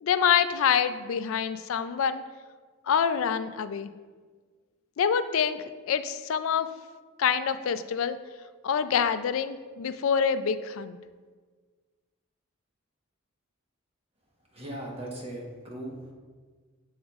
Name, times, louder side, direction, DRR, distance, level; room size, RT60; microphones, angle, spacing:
voice 1, 0.0-2.2 2.9-3.9 5.0-6.7 7.2-8.2 8.6-11.0, left 7 dB, 70° left, 12 dB, 0.4 m, -26 dB
voice 2, 14.4-16.1, right 1 dB, 25° right, -2 dB, 1.2 m, -39 dB
7.2 x 7.1 x 2.4 m, 1.5 s
head